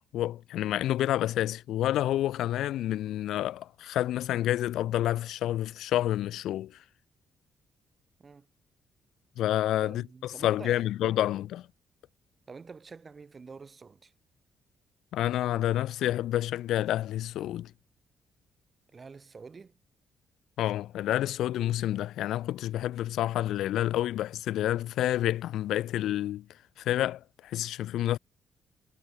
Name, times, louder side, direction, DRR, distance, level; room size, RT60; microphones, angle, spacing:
voice 1, 0.1-6.8 9.4-11.6 15.1-17.7 20.6-26.5 26.8-28.2, left 13 dB, 85° left, 0.7 m, -29 dB
voice 2, 9.8-11.3 12.5-14.1 18.9-19.8, right 4 dB, 30° right, 4.1 m, -47 dB
cardioid pair, 130°, 0 cm